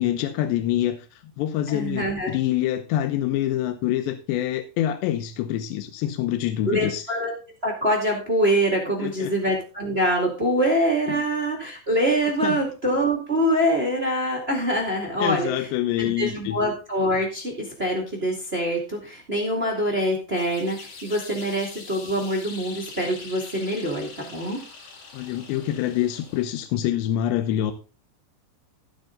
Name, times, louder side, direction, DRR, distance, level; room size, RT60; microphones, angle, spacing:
voice 1, 0.0-7.0 9.0-9.3 11.1-11.2 12.4-12.6 15.2-16.6 25.1-27.7, left 12 dB, 75° left, 8 dB, 2.9 m, -26 dB
voice 2, 1.7-2.3 6.6-7.3 7.6-15.7 16.0-24.6, equal, 25° right, 0 dB, 1.2 m, -24 dB
sound 1, 20.3-26.7, left 4 dB, 55° left, 3.6 m, -43 dB
14.0 x 8.1 x 3.8 m, 0.32 s
omnidirectional pair, 5.4 m